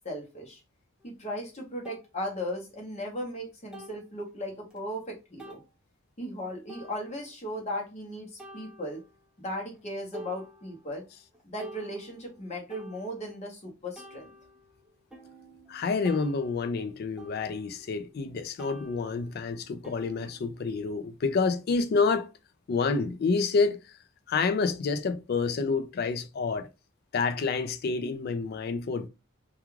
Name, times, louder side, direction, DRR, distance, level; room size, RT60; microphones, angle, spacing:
voice 1, 0.0-0.6 1.0-5.6 6.2-9.0 9.4-11.0 11.4-14.3, equal, 35° left, 0.8 m, -37 dB
sound 1, 1.0-1.1 1.8-2.1 3.7-4.1 4.7-4.8 5.4-5.7 6.7-7.3 8.4-9.2 9.7-9.8 10.1-11.0 11.3-13.5 14.0-18.3 18.6-20.9, equal, 5° right, 0.6 m, -48 dB
voice 2, 15.7-22.3 22.7-23.8 24.3-26.7 27.1-29.1, left 4 dB, 50° left, 0.3 m, -28 dB
2.3 x 2.3 x 3.1 m
head